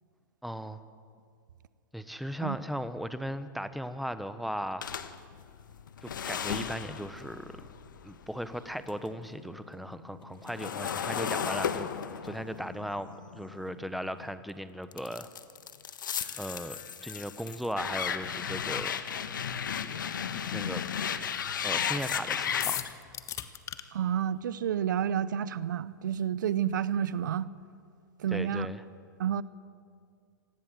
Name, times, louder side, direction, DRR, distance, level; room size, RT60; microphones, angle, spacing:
voice 1, 0.4-0.8 1.9-4.9 6.0-7.5 8.0-11.9 12.2-15.3 16.4-19.0 20.3-20.8 21.6-22.9 28.3-28.8, equal, ahead, 11 dB, 1.3 m, -37 dB
sound 1, 4.8-9.1 9.4-14.3 14.9-22.9, left 8 dB, 75° left, 1.4 m, -35 dB
sound 2, 22.6-23.8, left 10 dB, 30° left, 1.5 m, -35 dB
voice 2, 23.9-27.5 28.2-28.7 29.2-29.4, right 9 dB, 70° right, 18 dB, 0.8 m, -30 dB
26.0 x 19.0 x 7.7 m, 2.3 s
hypercardioid pair, 105°, 11 cm